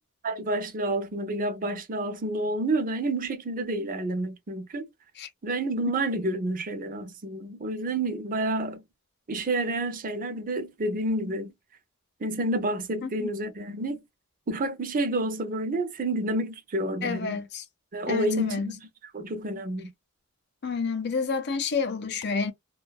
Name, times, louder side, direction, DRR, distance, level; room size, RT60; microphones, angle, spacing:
voice 1, 0.2-4.9 5.4-8.8 9.3-11.5 12.2-14.0 14.5-17.4 17.9-18.7 19.1-19.9, right 1 dB, 40° right, 0.6 m, -29 dB
voice 2, 17.0-17.6 18.1-18.7 20.6-22.5, left 5 dB, 50° left, 0.6 m, -29 dB
2.7 x 2.2 x 2.2 m
head